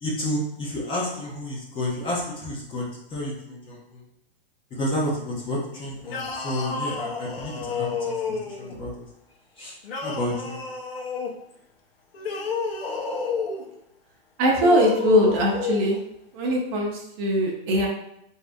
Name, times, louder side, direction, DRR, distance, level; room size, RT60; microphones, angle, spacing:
voice 1, 0.0-4.0 4.7-9.0 9.6-9.7 10.0-10.6, left 1 dB, 20° left, -4 dB, 0.7 m, -30 dB
sound 1, 6.0-8.8 9.8-11.4 12.1-13.7 14.5-16.0, left 5 dB, 90° left, 0.8 m, -30 dB
voice 2, 14.4-16.0 16.3-17.9, equal, 30° right, -1 dB, 0.7 m, -21 dB
3.6 x 2.7 x 3.4 m, 0.78 s
hypercardioid pair, 150°, 29 cm